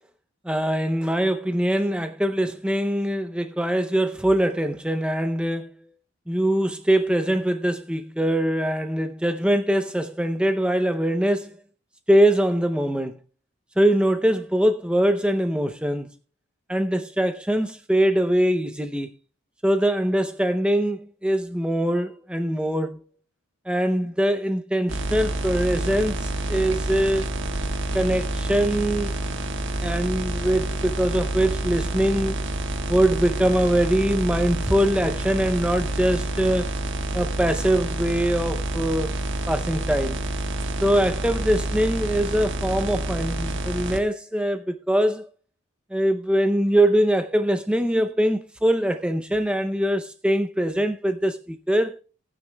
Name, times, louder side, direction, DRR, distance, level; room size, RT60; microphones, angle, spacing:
voice 1, 0.5-5.7 6.3-11.5 12.1-13.2 13.8-16.1 16.7-19.1 19.6-23.0 23.7-27.3 27.9-29.1 29.8-32.4 32.9-36.7 37.1-39.1 39.5-40.2 40.8-45.3 45.9-52.0, right 1 dB, 5° right, 0.5 m, -23 dB
sound 1, 24.9-44.0, right 1 dB, 55° right, 1.3 m, -28 dB
18.5 x 9.4 x 2.2 m
head